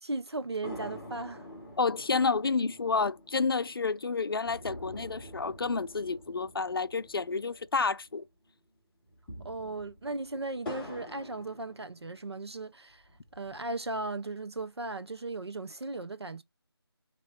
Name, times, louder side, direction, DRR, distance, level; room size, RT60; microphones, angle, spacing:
voice 1, 0.0-1.5 9.4-13.0 13.3-16.4, right 2 dB, 80° right, 0.9 m, -37 dB
sound 1, 0.6-8.2 8.5-8.6 9.0-12.4 12.9-13.9, left 1 dB, 5° left, 0.6 m, -47 dB
voice 2, 1.8-8.2, left 4 dB, 60° left, 0.4 m, -30 dB
4.3 x 3.0 x 3.9 m
figure-of-eight pair, 165°, 14 cm